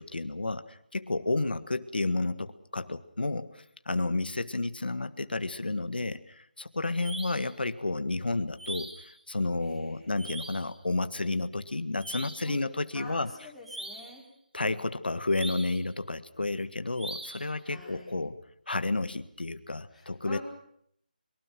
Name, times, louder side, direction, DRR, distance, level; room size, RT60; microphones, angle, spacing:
voice 1, 0.0-13.3 14.5-20.4, left 2 dB, 85° left, 11 dB, 1.6 m, -31 dB
voice 2, 1.2-1.7 9.6-10.3 12.4-12.6 12.9-14.3 17.3-18.1 19.9-20.4, left 2 dB, ahead, -4 dB, 5.3 m, -49 dB
sound 1, 7.0-7.5 8.6-9.1 10.2-10.7 12.0-12.5 13.6-14.2 15.3-15.9 16.9-17.5, right 2 dB, 80° right, 7.3 m, -41 dB
25.0 x 23.0 x 6.1 m, 0.68 s
figure-of-eight pair, 160°, 5 cm